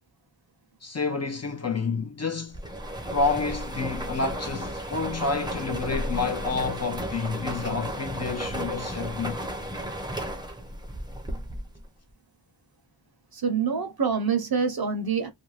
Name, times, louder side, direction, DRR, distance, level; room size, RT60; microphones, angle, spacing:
voice 1, 0.8-2.6 3.1-9.4, left 4 dB, 35° left, 0.5 m, -29 dB
sound 1, 2.5-11.8, right 1 dB, 10° right, 0.6 m, -34 dB
voice 2, 13.3-15.3, right 6 dB, 50° right, 0.8 m, -26 dB
2.5 x 2.2 x 3.1 m
wide cardioid pair, 60°, 48 cm